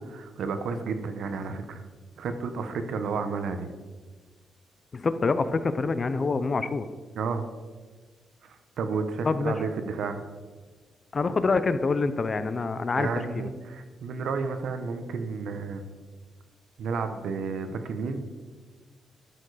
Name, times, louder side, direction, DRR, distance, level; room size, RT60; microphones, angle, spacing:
voice 1, 0.0-1.9 2.2-3.7 7.1-7.4 8.4-10.2 12.9-15.8 16.8-18.3, right 4 dB, 65° right, 8 dB, 0.9 m, -31 dB
voice 2, 4.9-6.9 9.2-9.5 11.1-13.1 13.4-13.5, left 4 dB, 30° left, 12 dB, 0.4 m, -26 dB
12.0 x 6.8 x 4.9 m, 1.4 s
wide cardioid pair, 175°, 0 cm